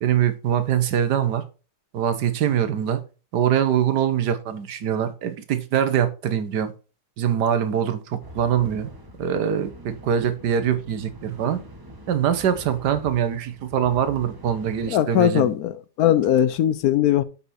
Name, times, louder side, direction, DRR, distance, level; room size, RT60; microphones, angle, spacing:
voice 1, 0.0-1.4 1.9-3.0 3.3-6.7 7.2-8.9 9.2-11.6 12.1-15.5, right 9 dB, 90° right, 1.6 m, -23 dB
sound 1, 8.2-15.0, equal, 15° right, 1.2 m, -44 dB
voice 2, 14.9-17.2, left 11 dB, 70° left, 1.1 m, -20 dB
7.8 x 5.6 x 4.2 m
omnidirectional pair, 1.7 m